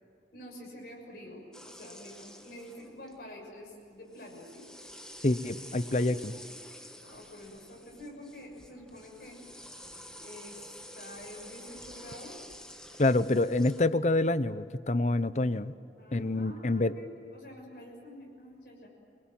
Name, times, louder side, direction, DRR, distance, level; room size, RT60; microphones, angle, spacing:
voice 1, 0.3-4.6 7.0-9.4 10.2-12.4 16.0-18.9, left 1 dB, 60° left, -1 dB, 6.5 m, -48 dB
sound 1, 1.5-3.3 4.1-13.9, equal, 5° left, 1.5 m, -49 dB
voice 2, 5.2-6.3 13.0-15.7 16.1-16.9, left 2 dB, 40° left, 15 dB, 0.7 m, -27 dB
29.0 x 20.5 x 7.7 m, 2.7 s
head